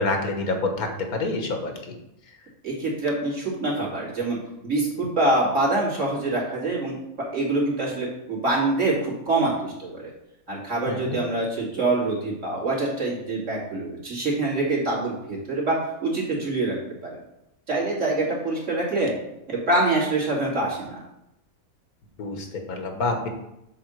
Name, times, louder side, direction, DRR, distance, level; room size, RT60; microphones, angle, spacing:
voice 1, 0.0-1.7 10.9-11.2 22.2-23.3, left 3 dB, 75° left, 4 dB, 1.6 m, -27 dB
voice 2, 2.6-4.4 4.6-7.0 7.3-10.1 10.5-16.8 17.0-17.2 17.7-19.1 19.5-21.0, right 2 dB, 55° right, -6 dB, 2.9 m, -25 dB
7.7 x 3.7 x 6.4 m, 0.86 s
omnidirectional pair, 1.5 m